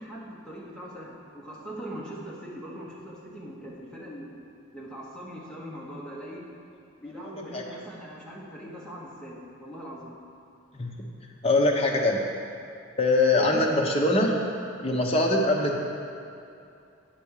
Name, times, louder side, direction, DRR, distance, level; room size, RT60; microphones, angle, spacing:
voice 1, 0.0-4.3 4.7-6.4 7.0-10.2 13.3-13.6, right 1 dB, 5° left, -6 dB, 1.2 m, -40 dB
voice 2, 11.4-12.2 13.0-14.3 14.8-15.8, left 2 dB, 30° left, -1 dB, 0.9 m, -22 dB
9.6 x 4.3 x 6.5 m, 2.6 s
head